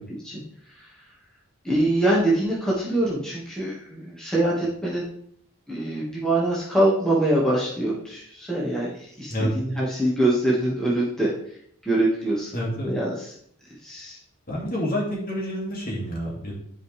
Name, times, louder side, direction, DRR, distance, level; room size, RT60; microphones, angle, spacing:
voice 1, 1.6-5.0 5.7-8.9 9.2-11.3 11.8-12.5 12.8-13.3 13.8-14.2, right 1 dB, 5° left, -7 dB, 1.7 m, -24 dB
voice 2, 12.5-12.9 14.5-16.5, equal, 40° left, -3 dB, 2.3 m, -28 dB
10.5 x 5.1 x 3.3 m, 0.64 s
head